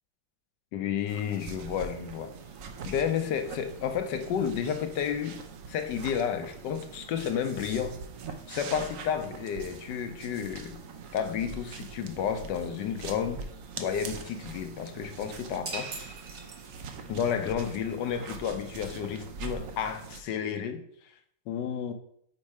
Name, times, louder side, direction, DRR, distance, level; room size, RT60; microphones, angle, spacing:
voice 1, 0.7-2.3 2.9-5.4 5.7-8.0 8.5-10.8 11.1-13.4 13.8-16.1 17.1-20.8 21.5-21.9, left 8 dB, 70° left, 1.2 m, -31 dB
sound 1, 1.1-20.2, right 5 dB, 75° right, 0.7 m, -43 dB
sound 2, 15.7-17.1, right 3 dB, 45° right, 1.0 m, -40 dB
5.4 x 4.2 x 4.7 m
omnidirectional pair, 2.2 m